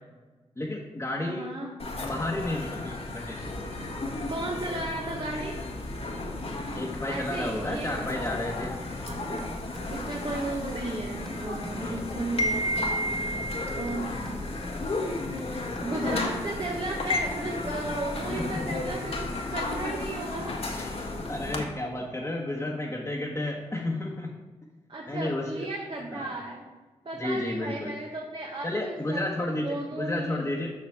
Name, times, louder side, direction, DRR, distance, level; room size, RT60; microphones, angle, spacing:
voice 1, 0.6-1.4 2.0-3.4 6.7-8.8 11.7-12.1 13.5-13.8 18.3-18.6 20.7-24.3 25.1-25.7 26.1-26.3 27.2-27.9 28.6-30.7, left 1 dB, 20° left, -3 dB, 1.2 m, -32 dB
voice 2, 1.2-1.7 4.3-5.6 7.1-8.0 9.0-9.5 9.9-12.9 13.7-14.1 15.4-20.6 24.9-26.7 27.0-30.5, right 2 dB, 40° right, -1 dB, 1.1 m, -35 dB
sound 1, 1.8-21.6, left 2 dB, 50° left, 1.3 m, -33 dB
sound 2, 6.8-18.9, left 1 dB, 5° left, 0.5 m, -46 dB
7.0 x 5.9 x 3.6 m, 1.3 s
supercardioid pair, 40°, 13 cm